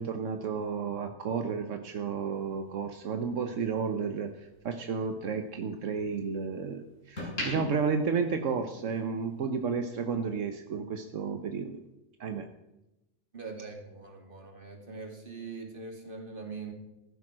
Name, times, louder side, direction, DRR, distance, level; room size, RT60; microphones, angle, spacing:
voice 1, 0.0-11.8 12.2-12.5, right 5 dB, 80° right, 6 dB, 1.3 m, -32 dB
sound 1, 2.3-4.7 5.1-6.5 6.9-9.1 9.4-9.6, left 1 dB, 85° left, 6.4 m, -40 dB
voice 2, 13.3-16.7, right 4 dB, 45° right, 2 dB, 2.9 m, -42 dB
15.5 x 13.5 x 6.2 m, 0.97 s
omnidirectional pair, 1.3 m